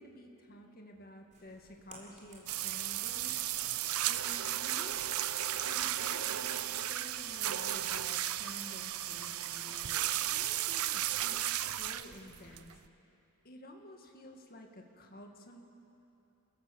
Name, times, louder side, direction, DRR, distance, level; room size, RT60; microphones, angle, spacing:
voice 1, 0.0-3.4 4.1-5.0 5.6-10.0 10.3-12.7 13.4-15.6, left 1 dB, 45° left, 2 dB, 1.8 m, -51 dB
sound 1, 1.3-12.3, right 3 dB, 35° right, 4.2 m, -56 dB
sound 2, 2.5-12.9, right 13 dB, 75° right, 0.6 m, -34 dB
28.5 x 16.0 x 7.0 m, 2.8 s
head